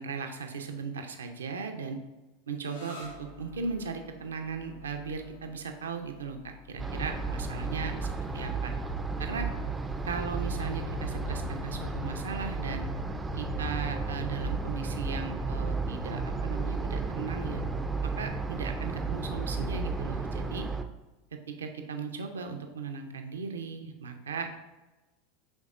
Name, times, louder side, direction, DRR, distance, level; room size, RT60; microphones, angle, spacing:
voice 1, 0.0-2.0 2.5-8.7 9.2-9.5 10.0-12.9 13.3-17.6 18.0-20.7 21.3-24.6, right 5 dB, 80° right, 5 dB, 0.5 m, -37 dB
sound 1, 2.6-10.0, left 1 dB, 80° left, 0.8 m, -55 dB
sound 2, 3.0-13.0, left 7 dB, 55° left, 0.4 m, -47 dB
sound 3, 6.8-20.8, right 3 dB, 15° right, 0.3 m, -33 dB
5.3 x 3.3 x 2.4 m, 1.1 s
figure-of-eight pair, 85°, 0 cm